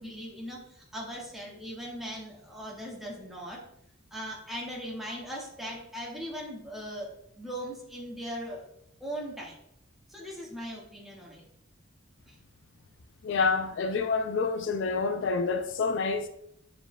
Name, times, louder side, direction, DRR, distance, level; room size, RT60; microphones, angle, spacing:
voice 1, 0.0-3.6 4.1-7.1 7.3-8.6 9.0-9.6 10.1-11.4 12.3-12.4, equal, ahead, 1.5 m, -39 dB
voice 2, 13.2-16.3, left 4 dB, 65° left, 0.4 m, -28 dB
9.4 x 4.7 x 2.2 m
head